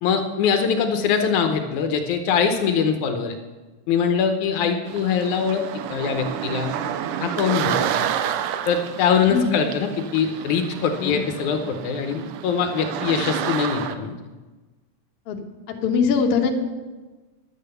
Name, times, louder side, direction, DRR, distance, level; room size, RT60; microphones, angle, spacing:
voice 1, 0.0-3.4 3.9-5.6 5.9-6.7 7.2-8.1 8.7-14.2, left 6 dB, 75° left, 5 dB, 2.2 m, -23 dB
sound 1, 4.9-14.0, right 10 dB, 85° right, 2.2 m, -29 dB
voice 2, 9.3-9.6 11.0-11.1 15.3-15.4 15.7-16.5, left 6 dB, 60° left, 2 dB, 1.7 m, -21 dB
11.0 x 8.8 x 6.7 m, 1.3 s
omnidirectional pair, 3.6 m